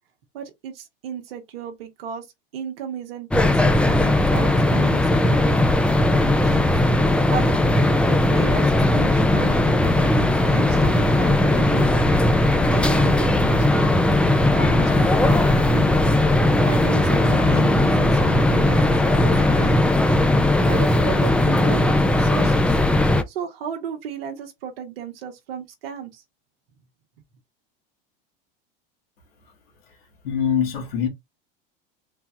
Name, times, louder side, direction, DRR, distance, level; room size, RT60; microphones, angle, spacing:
voice 1, 0.3-2.3 2.5-5.7 6.2-6.7 7.3-7.7 8.1-12.0 12.5-14.0 14.5-16.1 16.7-19.8 20.7-21.8 22.2-22.8 23.3-26.2, right 8 dB, 85° right, 1.2 m, -34 dB
sound 1, 3.3-23.2, left 1 dB, 5° left, 0.4 m, -18 dB
sound 2, 14.6-19.7, left 7 dB, 45° left, 1.8 m, -37 dB
voice 2, 30.2-31.1, left 8 dB, 90° left, 1.7 m, -23 dB
3.9 x 2.3 x 4.1 m
supercardioid pair, 110°, 29 cm